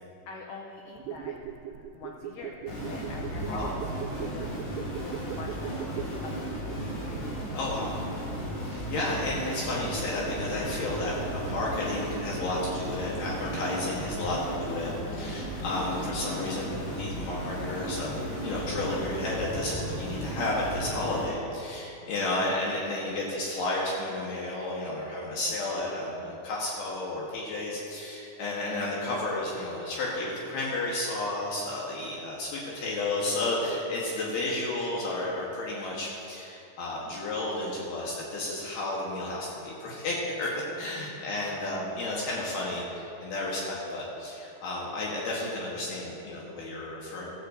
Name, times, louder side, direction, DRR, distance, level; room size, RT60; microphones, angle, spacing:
voice 1, 0.3-1.4 1.7-4.6 5.0-7.3 13.7-14.4 14.7-15.4 22.0-22.3 40.7-41.1 41.4-41.6, left 4 dB, 85° left, 1 dB, 1.8 m, -45 dB
sound 1, 0.9-7.8 8.0-8.1, right 9 dB, 85° right, 2.7 m, -40 dB
sound 2, 2.7-21.3, right 1 dB, 50° left, 3.7 m, -35 dB
voice 2, 3.4-3.7 7.5-8.0 8.7-47.3, left 2 dB, 70° left, -4 dB, 3.1 m, -32 dB
15.0 x 14.5 x 2.7 m, 2.8 s
omnidirectional pair, 4.9 m